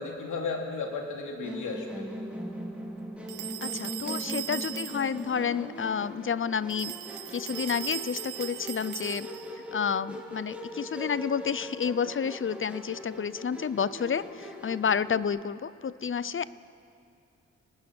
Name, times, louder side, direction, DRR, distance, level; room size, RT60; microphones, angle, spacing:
voice 1, 0.0-2.1, left 4 dB, 80° left, 1 dB, 3.0 m, -34 dB
Musical instrument, 1.4-15.2, equal, 5° right, 3.9 m, -40 dB
sound 1, 3.3-5.3 6.7-9.6, right 14 dB, 85° right, 0.6 m, -38 dB
voice 2, 3.6-6.9 7.3-9.3 9.7-16.5, left 7 dB, 40° left, 17 dB, 0.7 m, -30 dB
24.5 x 19.0 x 6.2 m, 2.5 s
supercardioid pair, 45°, 30 cm